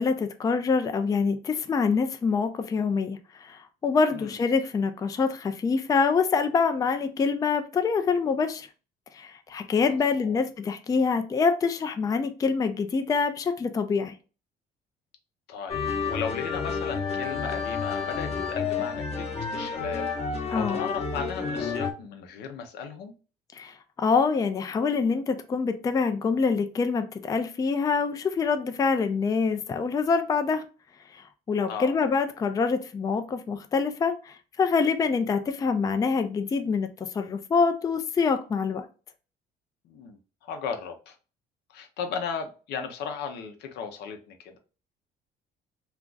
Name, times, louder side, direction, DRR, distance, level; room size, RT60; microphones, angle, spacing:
voice 1, 0.0-8.7 9.1-14.2 20.5-20.8 23.5-30.6 31.1-38.9, left 5 dB, 20° left, 0.3 m, -25 dB
voice 2, 15.5-20.1 20.5-23.1 31.7-32.0 39.8-41.2 41.7-44.6, left 6 dB, 80° left, 0.6 m, -36 dB
sound 1, 15.7-21.9, left 5 dB, 40° left, 0.8 m, -30 dB
2.4 x 2.3 x 3.8 m
cardioid pair, 110°, 17 cm